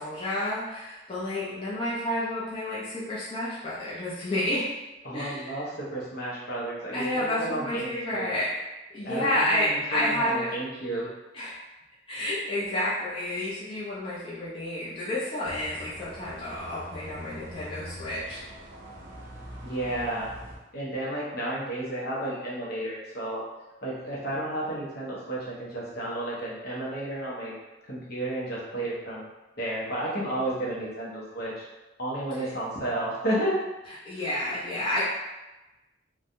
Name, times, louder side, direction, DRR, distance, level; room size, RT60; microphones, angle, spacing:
voice 1, 0.0-4.7 5.1-5.7 6.9-8.6 8.9-10.5 11.3-11.6 12.1-18.4 34.0-35.0, left 1 dB, 30° left, -10 dB, 0.6 m, -30 dB
voice 2, 5.0-8.3 9.0-11.1 19.6-20.3 20.7-23.4 23.8-27.5 27.9-29.2 29.6-31.7 32.0-33.6, right 1 dB, 60° left, -6 dB, 0.9 m, -32 dB
sound 1, 15.4-20.6, equal, 45° right, 0.5 m, -43 dB
3.2 x 2.2 x 2.6 m, 1.0 s
head